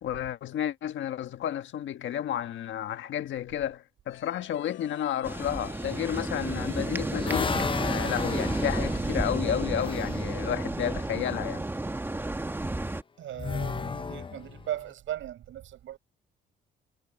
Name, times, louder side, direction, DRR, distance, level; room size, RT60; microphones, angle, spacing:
voice 1, 0.0-11.6, left 10 dB, 70° left, 1.6 m, -32 dB
sound 1, 4.1-9.3, left 14 dB, 85° left, 4.3 m, -48 dB
sound 2, 5.2-13.0, right 2 dB, 10° right, 1.2 m, -31 dB
sound 3, 6.4-10.3 13.3-14.8, left 5 dB, 25° left, 0.6 m, -34 dB
voice 2, 13.2-16.0, right 12 dB, 75° right, 7.7 m, -37 dB
cardioid pair, 90°, 20 cm